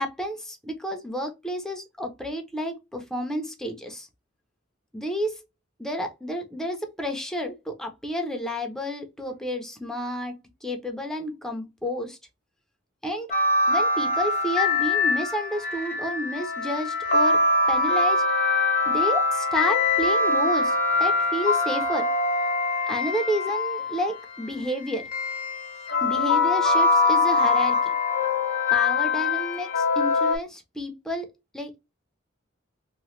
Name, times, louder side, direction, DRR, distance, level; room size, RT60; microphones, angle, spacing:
voice 1, 0.0-4.1 4.9-5.4 5.8-12.2 13.0-13.3 13.7-17.4 17.7-18.2 18.9-22.1 22.9-25.0 26.0-27.9 28.7-31.3 31.5-31.8, equal, 5° left, 0.6 m, -30 dB
sound 1, 13.3-24.2 25.1-30.4, left 3 dB, 45° left, 0.7 m, -23 dB
2.9 x 2.2 x 3.1 m
head